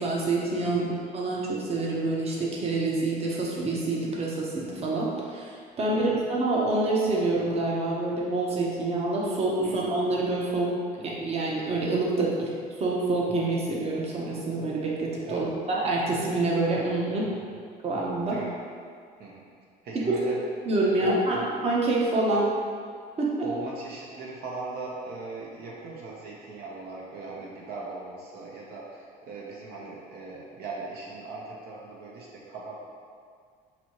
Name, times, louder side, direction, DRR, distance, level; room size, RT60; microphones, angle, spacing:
voice 1, 0.0-10.7 11.0-12.5 12.8-17.3 17.8-18.4 19.9-20.2 20.7-22.4 23.2-23.3, right 2 dB, 35° right, -4 dB, 0.8 m, -27 dB
voice 2, 17.2-17.6 18.3-18.6 19.2-19.4 19.8-20.4 21.0-21.5 22.3-22.4 23.4-32.8, right 3 dB, 70° right, -4 dB, 0.8 m, -39 dB
6.0 x 2.7 x 2.9 m, 2.1 s
cardioid pair, 110°, 17 cm